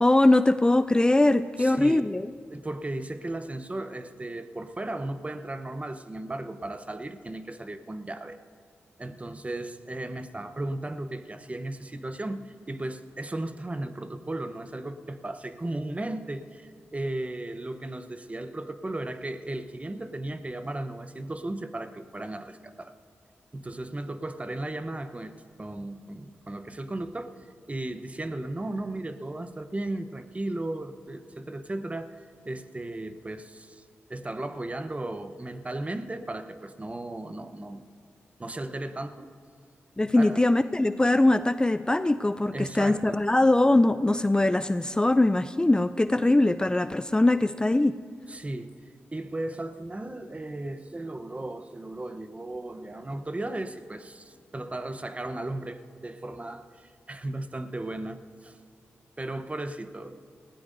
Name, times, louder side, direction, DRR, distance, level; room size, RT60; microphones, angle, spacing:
voice 1, 0.0-2.3 40.0-47.9, left 2 dB, 15° left, 12 dB, 0.4 m, -22 dB
voice 2, 1.6-2.1 2.5-8.4 9.0-22.9 23.5-25.3 25.6-27.4 27.7-33.8 34.1-37.8 38.4-39.3 40.2-40.4 42.5-43.2 48.3-48.7 49.1-58.6 59.2-60.2, right 2 dB, 30° right, 10 dB, 0.9 m, -35 dB
20.0 x 15.5 x 2.6 m, 2.3 s
cardioid pair, 45°, 5 cm